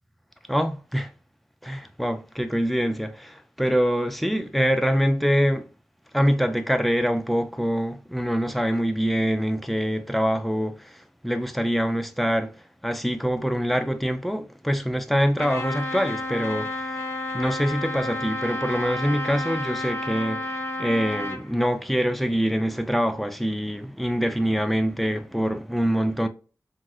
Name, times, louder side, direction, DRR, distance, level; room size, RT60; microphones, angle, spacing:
voice 1, 0.5-1.1 1.6-5.7 6.1-12.5 12.8-17.0 17.3-26.3, equal, ahead, 0.4 m, -25 dB
Trumpet, 15.4-21.4, left 1 dB, 35° left, 0.7 m, -31 dB
3.5 x 2.0 x 2.6 m
wide cardioid pair, 80°, 7 cm